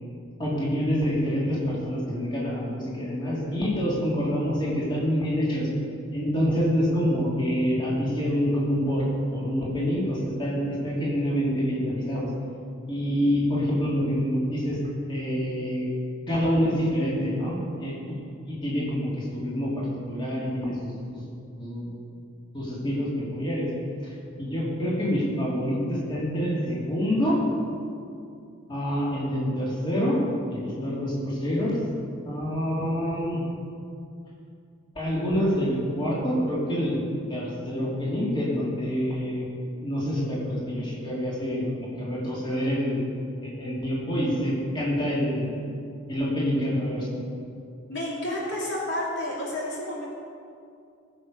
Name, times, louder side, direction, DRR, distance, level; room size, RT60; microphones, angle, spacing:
voice 1, 0.4-5.7 6.1-9.0 9.3-12.3 12.9-14.8 15.1-15.9 16.3-18.2 18.4-20.9 21.6-21.9 22.5-23.7 24.4-27.4 28.7-30.2 30.5-31.8 32.2-33.4 34.9-37.0 37.3-39.4 39.8-41.6 42.0-43.0 43.4-45.5 46.1-47.1, equal, 25° left, -6 dB, 3.1 m, -26 dB
voice 2, 47.9-50.1, left 1 dB, 55° left, -5 dB, 2.6 m, -30 dB
19.0 x 7.3 x 5.4 m, 2.5 s
head